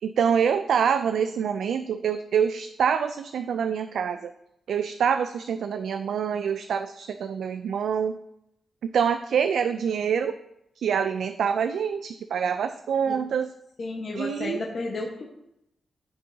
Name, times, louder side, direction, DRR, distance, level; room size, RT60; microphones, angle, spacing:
voice 1, 0.0-4.3 4.7-8.2 8.8-10.4 10.8-13.5 14.2-14.6, right 7 dB, 75° right, 9 dB, 0.3 m, -26 dB
voice 2, 13.8-15.2, left 3 dB, 40° left, -2 dB, 1.1 m, -32 dB
13.0 x 5.5 x 2.7 m, 0.81 s
wide cardioid pair, 175°, 0 cm